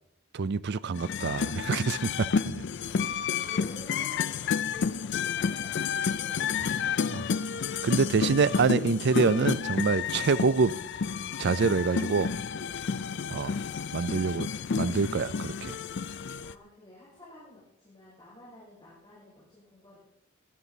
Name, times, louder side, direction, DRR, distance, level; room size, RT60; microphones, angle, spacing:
voice 1, 0.3-2.6 7.8-10.7 11.4-12.3 13.3-13.5 13.9-14.5 14.8-15.8, right 4 dB, 55° right, 0.5 m, -26 dB
sound 1, 0.9-16.5, left 6 dB, 60° left, 0.4 m, -31 dB
voice 2, 3.4-7.1 10.3-10.8 13.0-13.4 16.3-20.0, equal, 20° left, 5.6 m, -51 dB
17.0 x 11.5 x 4.0 m
head